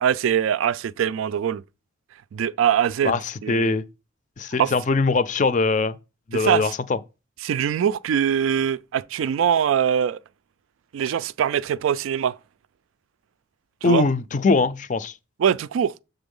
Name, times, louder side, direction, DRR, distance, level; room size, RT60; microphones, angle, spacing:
voice 1, 0.0-1.6 2.3-3.2 3.4-3.7 4.6-4.7 6.3-6.7 7.4-10.2 10.9-12.4 13.8-14.0 15.4-15.9, right 8 dB, 80° right, 0.3 m, -22 dB
voice 2, 3.0-3.8 4.4-6.0 6.3-7.0 13.8-15.1, left 3 dB, 40° left, 0.4 m, -22 dB
7.0 x 3.9 x 5.3 m
head